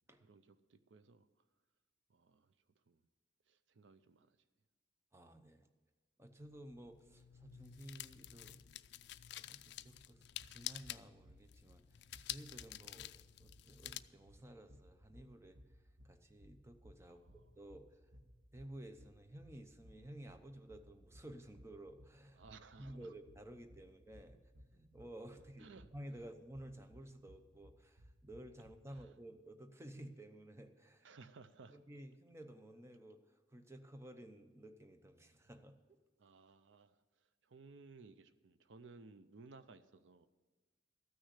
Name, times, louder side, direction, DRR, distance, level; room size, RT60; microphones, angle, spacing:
voice 1, 0.2-1.3 2.1-2.5 2.9-3.0 3.5-4.4 17.0-17.6 22.3-23.1 25.6-25.9 28.9-29.1 31.0-31.8 36.2-40.3, right 4 dB, 85° right, 12 dB, 0.6 m, -59 dB
voice 2, 5.1-5.7 6.2-8.7 9.4-15.6 16.0-18.0 18.5-22.4 22.8-24.4 24.7-31.1 31.7-33.2 33.5-36.0, right 1 dB, 15° right, 7 dB, 0.7 m, -54 dB
sound 1, 6.4-14.0, left 13 dB, 65° left, 0.4 m, -50 dB
sound 2, 10.4-29.1, equal, 50° right, 0.9 m, -63 dB
14.0 x 6.4 x 8.2 m, 1.3 s
head